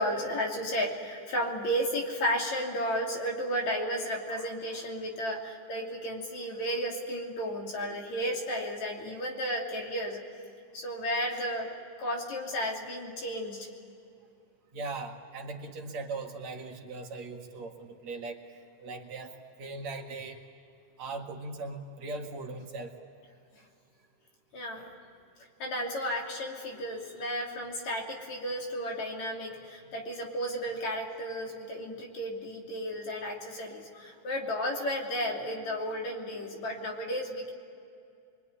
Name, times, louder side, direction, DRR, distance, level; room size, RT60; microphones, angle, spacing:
voice 1, 0.0-10.2 10.7-11.7 12.0-13.7 24.5-24.9 25.6-37.5, equal, 60° left, 1 dB, 4.3 m, -33 dB
voice 2, 14.7-18.4 18.8-19.3 19.6-20.4 21.0-22.9, right 3 dB, 60° right, 2 dB, 3.0 m, -39 dB
25.0 x 24.0 x 9.9 m, 2.4 s
omnidirectional pair, 3.7 m